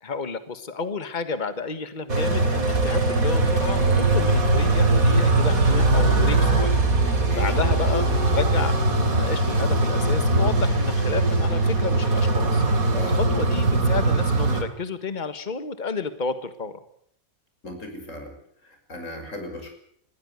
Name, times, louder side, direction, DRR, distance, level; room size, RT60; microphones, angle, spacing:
voice 1, 0.0-6.8 7.3-8.1 8.3-12.6 13.0-16.8, left 4 dB, 35° left, 12 dB, 1.7 m, -31 dB
sound 1, 2.1-14.6, right 2 dB, 85° right, 3.5 m, -21 dB
voice 2, 17.6-18.3 18.6-19.7, left 1 dB, 60° left, 4 dB, 6.3 m, -36 dB
21.5 x 15.5 x 9.7 m, 0.66 s
omnidirectional pair, 1.5 m